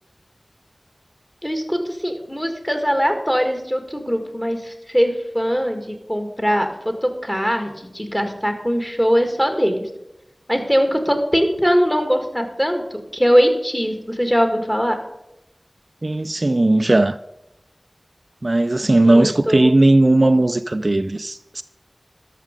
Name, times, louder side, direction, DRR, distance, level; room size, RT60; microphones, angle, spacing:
voice 1, 1.4-9.9 10.5-15.0 19.0-19.7, equal, 10° left, 1.7 m, -21 dB
voice 2, 16.0-17.2 18.4-21.6, right 2 dB, 50° right, 0.3 m, -17 dB
12.5 x 6.5 x 5.1 m
wide cardioid pair, 45°, 0 cm